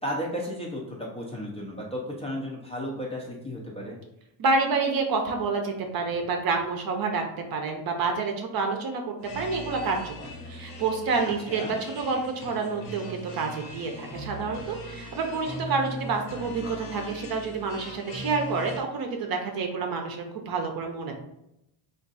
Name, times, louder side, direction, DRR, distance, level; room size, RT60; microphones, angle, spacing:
voice 1, 0.0-4.0 11.5-11.7, equal, 15° left, -4 dB, 0.5 m, -34 dB
voice 2, 4.4-7.2 7.5-10.1 10.5-21.2, right 4 dB, 45° right, 3 dB, 0.7 m, -28 dB
sound 1, 9.2-18.8, left 1 dB, 90° left, 1.2 m, -40 dB
3.5 x 2.6 x 4.0 m, 0.82 s
cardioid pair, 140°, 49 cm